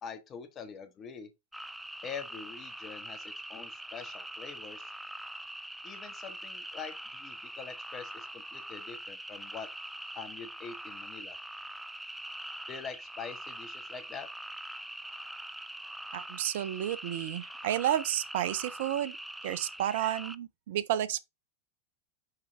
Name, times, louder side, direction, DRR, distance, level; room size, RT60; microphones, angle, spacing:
voice 1, 0.0-1.3 2.0-4.9 5.8-9.7 10.1-11.4 12.7-14.3, left 6 dB, 30° left, 1.6 m, -44 dB
sound 1, 1.5-20.4, right 1 dB, 5° right, 0.4 m, -43 dB
voice 2, 16.1-19.2 19.4-21.2, right 12 dB, 60° right, 0.6 m, -31 dB
6.6 x 4.6 x 3.5 m
figure-of-eight pair, 90°, 0 cm